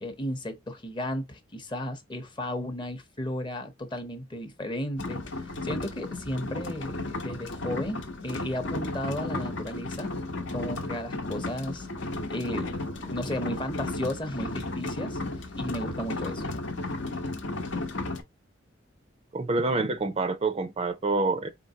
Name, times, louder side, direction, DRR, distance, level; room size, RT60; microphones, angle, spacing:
voice 1, 0.0-10.1 10.5-11.9 12.3-16.4, left 1 dB, 25° left, 0.7 m, -34 dB
sound 1, 5.0-18.2, left 2 dB, 70° left, 0.9 m, -34 dB
voice 2, 19.3-21.5, right 3 dB, 30° right, 0.4 m, -27 dB
4.4 x 3.0 x 2.7 m
head